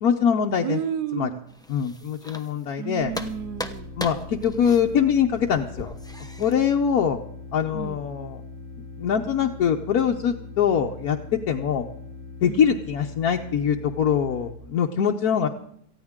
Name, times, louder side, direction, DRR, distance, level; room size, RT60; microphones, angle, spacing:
voice 1, 0.0-0.8 1.2-1.3 1.7-3.1 4.0-5.9 6.4-7.2 7.5-8.4 9.0-11.8 12.4-15.5, left 7 dB, 70° left, 1 dB, 1.3 m, -23 dB
voice 2, 0.6-1.4 2.8-3.9 7.7-8.0 12.4-12.7, right 9 dB, 80° right, 13 dB, 1.3 m, -31 dB
sound 1, 1.5-2.8 3.1-6.5, left 1 dB, 5° left, 0.5 m, -38 dB
sound 2, 3.0-14.5, left 3 dB, 45° right, 6.4 m, -41 dB
18.5 x 14.5 x 3.6 m, 0.69 s
omnidirectional pair, 1.7 m